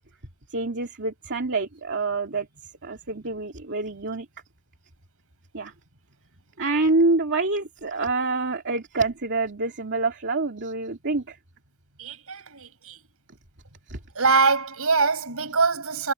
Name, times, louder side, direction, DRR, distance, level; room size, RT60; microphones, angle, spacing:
voice 1, 0.5-2.5 2.8-4.3 5.5-5.7 6.6-11.4 13.9-14.0, right 3 dB, 55° right, 2.6 m, -26 dB
voice 2, 12.0-13.0 14.2-16.1, right 4 dB, 70° right, 7.1 m, -23 dB
head